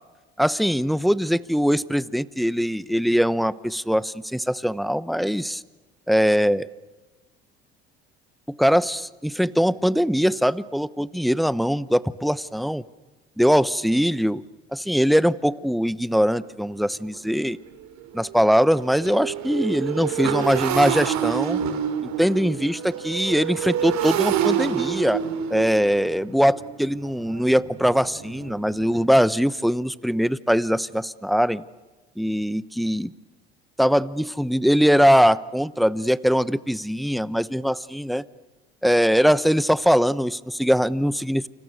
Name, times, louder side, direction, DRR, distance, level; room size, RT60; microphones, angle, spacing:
voice 1, 0.4-5.6 6.1-6.7 8.5-12.8 13.4-14.4 14.7-17.6 18.1-21.6 22.0-25.2 25.5-31.6 32.2-33.1 33.8-38.2 38.8-41.5, equal, ahead, 18 dB, 1.0 m, -21 dB
Motorcycle, 16.4-16.5 17.0-17.2 17.5-29.1, right 9 dB, 60° right, 3.3 m, -28 dB
29.5 x 26.0 x 6.5 m, 1.2 s
hypercardioid pair, 65°, 31 cm